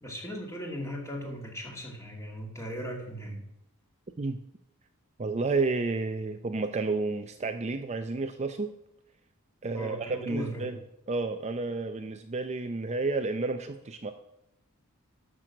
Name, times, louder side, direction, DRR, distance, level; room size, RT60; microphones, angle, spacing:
voice 1, 0.0-3.4 9.7-10.7, equal, 15° left, 0 dB, 2.3 m, -38 dB
voice 2, 5.2-8.7 9.6-10.8 11.1-14.1, right 3 dB, 30° right, 7 dB, 0.6 m, -31 dB
12.5 x 6.2 x 6.0 m, 0.82 s
head